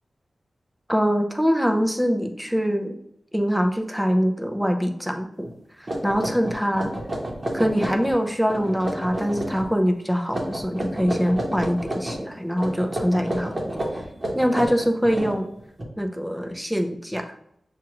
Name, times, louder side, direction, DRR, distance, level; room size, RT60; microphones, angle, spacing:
voice 1, 0.9-3.0 3.3-5.5 5.8-6.9 7.5-13.8 14.3-15.5 16.0-17.2, equal, ahead, 4 dB, 0.5 m, -24 dB
sound 1, 5.4-5.5 5.9-8.2 8.4-9.7 10.3-12.2 12.6-15.8, right 1 dB, 30° right, 1.0 m, -30 dB
7.3 x 2.4 x 2.9 m, 0.74 s
wide cardioid pair, 120°, 0 cm